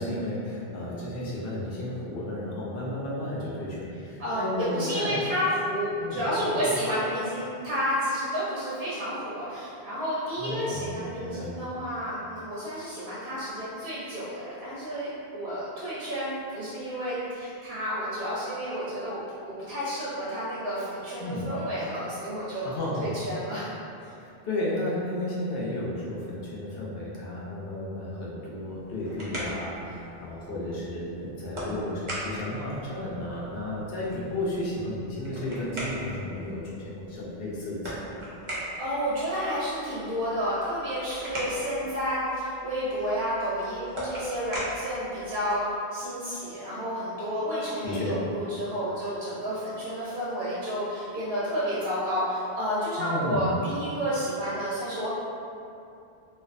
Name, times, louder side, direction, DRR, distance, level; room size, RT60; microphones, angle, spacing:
voice 1, 0.0-5.2 6.0-6.3 6.6-6.7 10.4-11.6 21.2-21.5 22.6-23.1 24.2-38.2 46.3-46.4 47.8-48.2 53.0-53.6, left 1 dB, 65° left, -7 dB, 0.8 m, -33 dB
voice 2, 4.2-22.7 23.0-23.7 24.0-24.1 38.8-45.7 45.9-55.1, equal, 75° right, -9 dB, 0.8 m, -30 dB
sound 1, 28.7-45.8, right 1 dB, 40° right, 0.5 m, -40 dB
2.5 x 2.1 x 2.5 m, 2.6 s
omnidirectional pair, 1.1 m